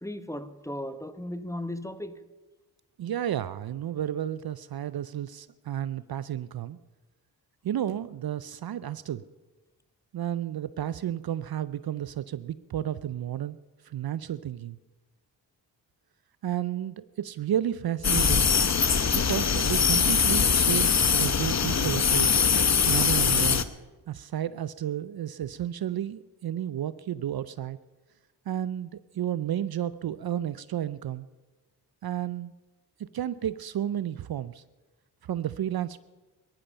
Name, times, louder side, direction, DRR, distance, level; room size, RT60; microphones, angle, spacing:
voice 1, 0.0-2.2, left 1 dB, 5° left, 1.0 m, -36 dB
voice 2, 3.0-6.8 7.6-9.2 10.1-13.6 13.8-14.8 16.4-18.5 19.1-23.6 24.1-27.8 28.5-31.3 32.0-32.5 33.0-34.6 35.3-36.0, right 11 dB, 55° right, 0.6 m, -32 dB
sound 1, 18.0-23.6, left 6 dB, 35° left, 0.9 m, -22 dB
18.0 x 13.5 x 5.7 m
supercardioid pair, 50°, 45 cm